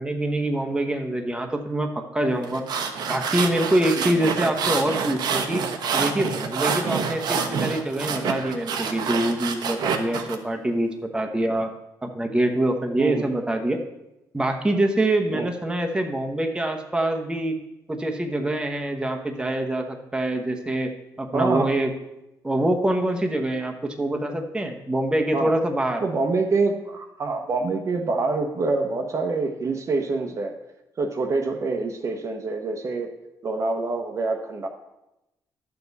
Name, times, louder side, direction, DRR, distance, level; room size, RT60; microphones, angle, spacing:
voice 1, 0.0-2.7 3.1-5.6 5.9-11.7 12.0-13.8 14.3-17.6 17.9-20.9 21.2-21.9 22.4-26.0, right 1 dB, 10° right, 4 dB, 1.0 m, -25 dB
sound 1, 2.4-10.4, right 6 dB, 65° right, 1.0 m, -27 dB
voice 2, 3.9-4.3 13.0-13.3 15.3-15.5 21.3-21.7 25.3-25.5 26.0-30.5 31.0-33.1 33.4-34.7, right 3 dB, 40° right, 4 dB, 1.0 m, -26 dB
10.5 x 7.0 x 4.1 m, 0.92 s
cardioid pair, 95°, 8 cm